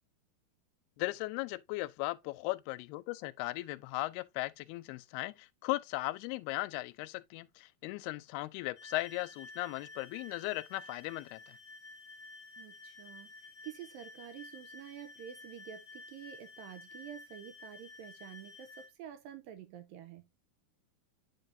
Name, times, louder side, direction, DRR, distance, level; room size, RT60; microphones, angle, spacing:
voice 1, 1.0-11.6, left 20 dB, 90° left, 2.5 m, -37 dB
sound 1, 8.8-18.9, left 3 dB, 15° left, 2.0 m, -52 dB
voice 2, 12.6-20.3, right 10 dB, 80° right, 2.2 m, -49 dB
9.0 x 5.4 x 2.6 m
omnidirectional pair, 4.5 m